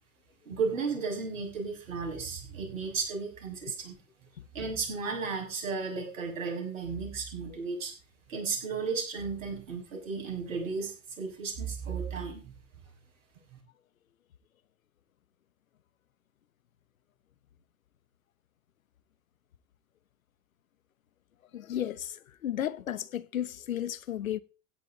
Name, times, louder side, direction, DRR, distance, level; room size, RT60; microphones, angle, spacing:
voice 1, 0.5-3.9 4.5-7.9 8.3-12.5 13.5-13.6, right 5 dB, 80° right, 6.5 m, -34 dB
voice 2, 21.5-24.4, left 11 dB, 85° left, 0.9 m, -34 dB
16.0 x 9.2 x 4.0 m
hypercardioid pair, 70°, 40 cm